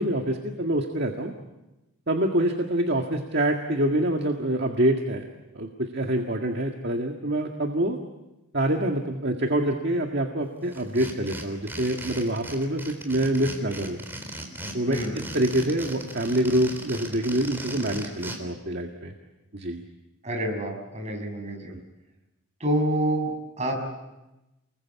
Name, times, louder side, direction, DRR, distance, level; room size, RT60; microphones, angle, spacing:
voice 1, 0.0-1.3 2.1-5.2 5.5-8.0 8.5-14.0 14.7-19.1 19.5-19.8 21.7-21.8, right 1 dB, 50° right, 3 dB, 1.8 m, -26 dB
sound 1, 10.7-18.4, right 1 dB, 10° right, 3.7 m, -38 dB
voice 2, 20.2-21.8 22.6-23.8, right 1 dB, 30° right, 2 dB, 6.3 m, -28 dB
29.5 x 21.5 x 8.3 m, 1.0 s
head